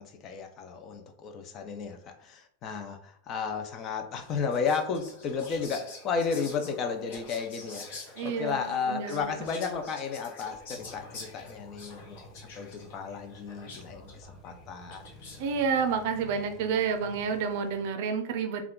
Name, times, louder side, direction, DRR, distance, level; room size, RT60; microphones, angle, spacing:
voice 1, 0.0-15.1, left 5 dB, 35° left, 6 dB, 0.4 m, -33 dB
Whispering, 4.2-15.5, left 3 dB, 70° left, 1.0 m, -47 dB
voice 2, 8.1-9.4 15.4-18.6, right 6 dB, 60° right, 6 dB, 0.5 m, -29 dB
sound 1, 10.7-17.8, equal, 10° right, 0.7 m, -51 dB
2.3 x 2.2 x 3.5 m, 0.62 s
supercardioid pair, 140°, 0 cm